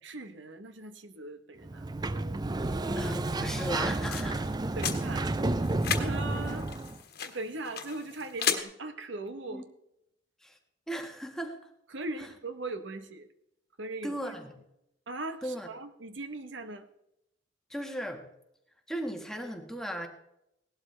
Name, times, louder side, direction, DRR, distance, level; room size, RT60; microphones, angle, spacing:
voice 1, 0.0-1.8 4.8-5.3 5.6-6.7 7.2-9.7 11.9-13.3 13.8-14.2 15.1-16.9, right 2 dB, 80° right, 9 dB, 1.0 m, -39 dB
Sliding door, 1.6-7.0, right 2 dB, 20° right, 0.4 m, -31 dB
voice 2, 2.9-4.5 9.5-9.6 10.4-10.6 10.9-11.6 12.2-12.3 14.0-14.5 15.4-15.7 17.7-18.2 18.9-20.1, equal, 5° left, 3 dB, 1.4 m, -36 dB
sound 1, 3.6-8.6, left 8 dB, 55° left, 1.4 m, -36 dB
17.5 x 12.0 x 3.3 m, 0.83 s
head